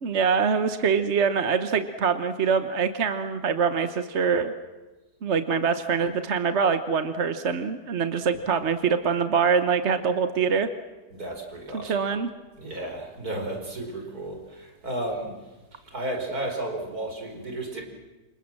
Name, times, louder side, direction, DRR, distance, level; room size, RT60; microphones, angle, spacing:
voice 1, 0.0-4.5 5.2-10.7 11.7-12.3, right 6 dB, 50° right, 9 dB, 1.3 m, -24 dB
voice 2, 11.1-12.0 12.6-15.4 15.7-17.8, right 1 dB, 70° right, 2 dB, 5.2 m, -33 dB
28.5 x 26.5 x 7.6 m, 1.2 s
omnidirectional pair, 1.7 m